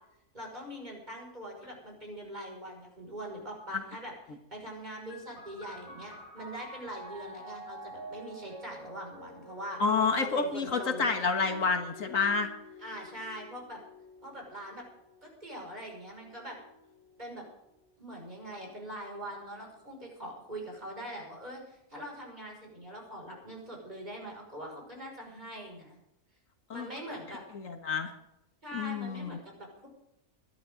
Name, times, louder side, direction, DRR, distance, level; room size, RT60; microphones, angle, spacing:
voice 1, 0.3-4.1 4.5-9.8 10.2-11.1 12.8-13.8 14.2-14.8 15.2-16.6 17.2-17.5 18.0-26.0 26.7-27.4 28.6-29.9, right 1 dB, 30° right, -1 dB, 6.0 m, -43 dB
sound 1, 5.1-18.3 19.2-20.0, left 1 dB, 80° right, 6.8 m, -48 dB
voice 2, 9.8-12.5 26.7-26.9 27.5-28.1 28.7-29.4, left 4 dB, 65° left, 5 dB, 1.8 m, -29 dB
22.0 x 12.0 x 3.8 m, 0.86 s
omnidirectional pair, 1.5 m